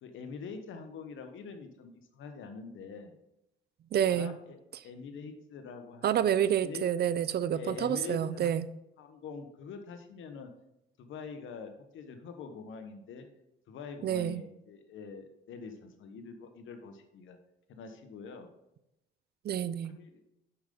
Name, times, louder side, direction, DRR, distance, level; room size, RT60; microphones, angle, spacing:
voice 1, 0.0-3.1 4.1-4.6 4.8-6.9 7.5-8.5 9.0-10.5 11.0-13.3 13.7-17.4 17.7-18.5 19.8-20.2, left 5 dB, 75° left, 6 dB, 1.1 m, -45 dB
voice 2, 3.9-4.3 6.0-8.7 14.0-14.4 19.4-19.9, right 9 dB, 55° right, 15 dB, 0.5 m, -28 dB
7.2 x 6.5 x 3.8 m, 0.87 s
cardioid pair, 90°, 20 cm